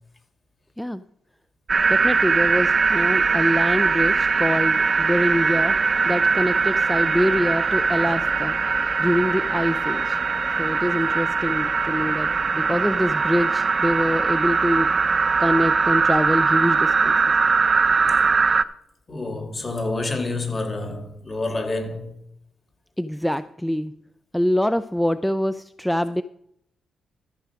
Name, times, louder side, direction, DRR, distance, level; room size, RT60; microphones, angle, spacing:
sound 1, 1.7-18.6, right 4 dB, 45° right, 0.7 m, -21 dB
voice 1, 1.9-5.8 6.0-8.6 9.0-10.2 10.6-14.9 15.4-17.3 23.0-24.0 24.3-26.2, equal, 5° left, 0.5 m, -25 dB
voice 2, 19.1-22.1, left 2 dB, 35° left, 2.5 m, -28 dB
13.0 x 6.2 x 5.1 m
supercardioid pair, 55°, 0 cm